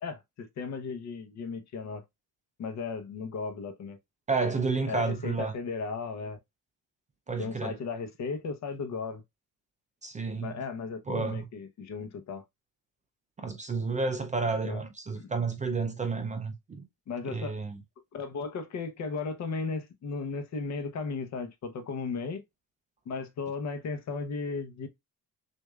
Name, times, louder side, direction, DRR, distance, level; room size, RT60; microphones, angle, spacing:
voice 1, 0.0-2.0 2.6-4.0 4.9-6.4 7.4-9.2 10.4-12.4 14.6-14.8 15.2-15.3 17.1-17.5 18.1-22.4 23.1-24.9, left 4 dB, 50° left, 0.9 m, -35 dB
voice 2, 4.3-5.5 7.3-7.8 10.0-10.6 11.1-11.5 13.4-16.9 17.2-17.8, right 4 dB, 20° right, 0.4 m, -31 dB
6.4 x 2.6 x 2.3 m
cardioid pair, 170°, 35 cm